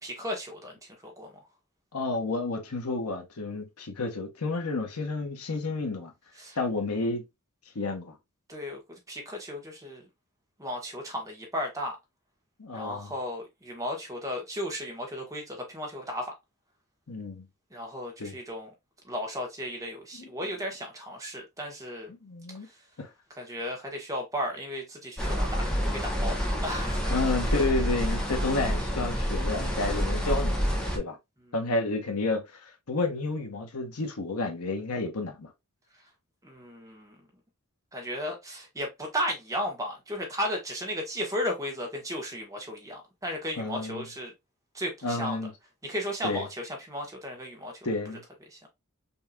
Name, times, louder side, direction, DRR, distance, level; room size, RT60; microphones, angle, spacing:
voice 1, 0.0-1.3 6.4-6.6 8.5-10.1 10.6-12.0 12.7-16.3 17.7-18.7 19.0-22.1 23.4-26.4 26.6-27.2 36.4-37.1 37.9-44.3 44.7-45.4 45.8-47.9 48.5-48.6, equal, 15° right, 1.2 m, -35 dB
voice 2, 1.9-6.1 6.6-7.2 7.7-8.1 12.6-13.1 17.1-17.5 18.2-18.3 20.2-20.3 22.1-22.7 23.0-23.1 27.1-30.6 30.9-31.2 31.5-35.5 43.6-44.0 45.0-45.5 46.2-46.4 47.8-48.2, left 3 dB, 90° left, 1.0 m, -31 dB
sound 1, 25.2-31.0, equal, 5° left, 0.9 m, -28 dB
5.4 x 2.8 x 2.3 m
head